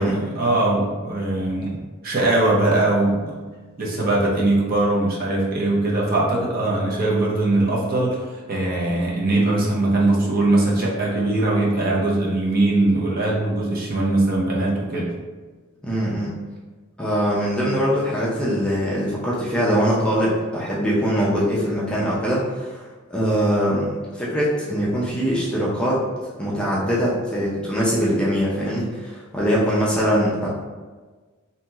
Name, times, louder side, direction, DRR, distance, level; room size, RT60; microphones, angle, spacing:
voice 1, 0.0-3.4 3.8-15.1, right 2 dB, 45° right, -4 dB, 0.6 m, -21 dB
voice 2, 15.8-16.4 17.0-26.0 26.4-30.5, equal, 5° left, -7 dB, 0.4 m, -22 dB
2.8 x 2.7 x 2.3 m, 1.3 s
head